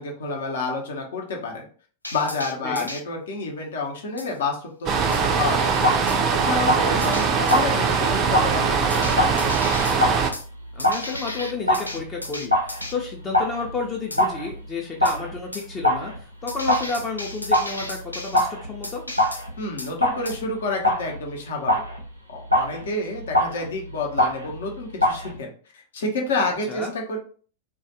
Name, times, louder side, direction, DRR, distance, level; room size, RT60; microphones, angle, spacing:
voice 1, 0.0-1.7 2.1-5.8 6.3-9.6 19.6-21.8 22.3-25.5 25.9-27.2, left 3 dB, 60° left, 1 dB, 0.7 m, -29 dB
sound 1, 2.0-3.0 4.2-4.3 5.1-5.3 6.1-6.2 7.0-7.6 8.9-10.0 10.3-10.5 10.8-12.9 14.1-14.2 15.0-15.2 15.5-15.7 16.5-18.5 18.8-19.4 19.8-19.9 20.3-20.4, left 1 dB, 85° left, 0.3 m, -35 dB
sound 2, 4.9-10.3, right 5 dB, 35° right, 0.3 m, -22 dB
sound 3, 5.7-25.4, left 1 dB, 90° right, 0.5 m, -26 dB
voice 2, 6.7-7.0 10.7-19.1 26.7-26.9, left 4 dB, 25° left, 0 dB, 0.5 m, -31 dB
2.3 x 2.2 x 2.8 m, 0.42 s
figure-of-eight pair, 90°, 0 cm